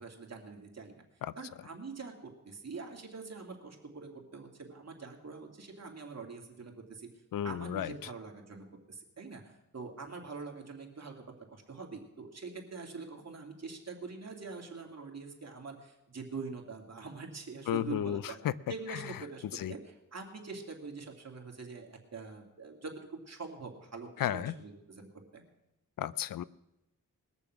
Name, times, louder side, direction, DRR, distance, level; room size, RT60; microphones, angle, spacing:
voice 1, 0.0-1.0 1.4-2.1 2.4-7.1 7.4-18.4 18.7-25.4, right 4 dB, 50° right, 1 dB, 2.4 m, -44 dB
voice 2, 7.3-7.9 17.7-18.5 19.5-19.7 24.2-24.5 26.0-26.4, left 11 dB, 80° left, 18 dB, 0.5 m, -33 dB
20.5 x 6.9 x 6.1 m, 0.92 s
wide cardioid pair, 75°, 33 cm